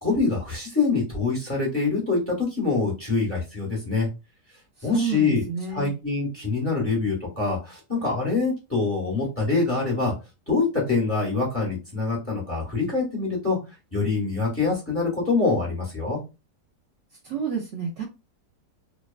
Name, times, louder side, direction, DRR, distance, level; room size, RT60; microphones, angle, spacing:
voice 1, 0.0-4.1 4.8-10.1 10.5-13.6 13.9-16.2, left 4 dB, 10° left, -4 dB, 1.0 m, -25 dB
voice 2, 4.9-5.9 17.2-18.0, right 6 dB, 85° right, 0 dB, 0.6 m, -29 dB
2.9 x 2.2 x 2.3 m, 0.27 s
omnidirectional pair, 1.9 m